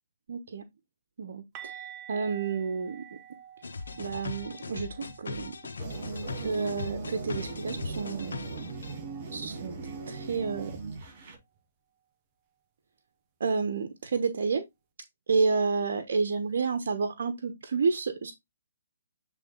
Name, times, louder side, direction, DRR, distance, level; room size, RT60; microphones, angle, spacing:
voice 1, 0.3-0.6 1.2-3.0 4.0-5.6 6.4-8.4 9.3-9.7 10.1-10.7 13.4-14.6 15.3-18.3, right 5 dB, 65° right, 1.2 m, -30 dB
sound 1, 1.5-7.3 7.6-7.8 8.2-8.3 11.6-11.7, right 10 dB, 25° right, 1.0 m, -49 dB
sound 2, 3.6-8.9, left 4 dB, 85° left, 1.2 m, -39 dB
sound 3, 5.8-11.3, right 3 dB, 40° right, 3.9 m, -39 dB
8.3 x 3.6 x 3.8 m
hypercardioid pair, 155°, 0 cm